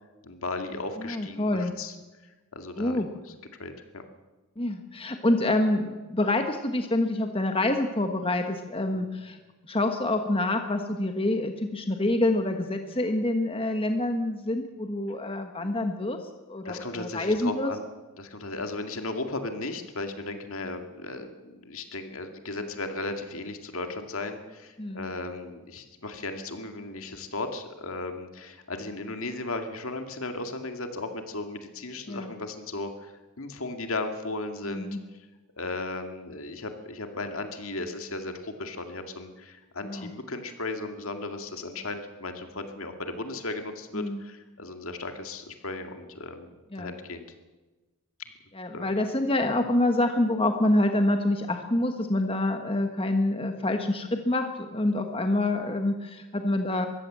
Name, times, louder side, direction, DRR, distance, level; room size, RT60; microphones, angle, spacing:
voice 1, 0.2-1.9 2.5-3.1 3.6-4.0 8.9-9.1 16.6-17.9 18.2-34.9 35.6-47.3 48.7-48.9, left 2 dB, 65° left, 6 dB, 2.2 m, -36 dB
voice 2, 1.0-1.7 2.8-3.1 4.6-9.4 9.7-16.2 16.5-17.7 24.8-25.1 32.1-32.3 34.7-35.0 39.8-40.1 43.9-44.2 46.7-46.9 48.5-56.9, left 1 dB, 25° left, 5 dB, 1.3 m, -27 dB
23.0 x 15.5 x 7.6 m, 1.2 s
head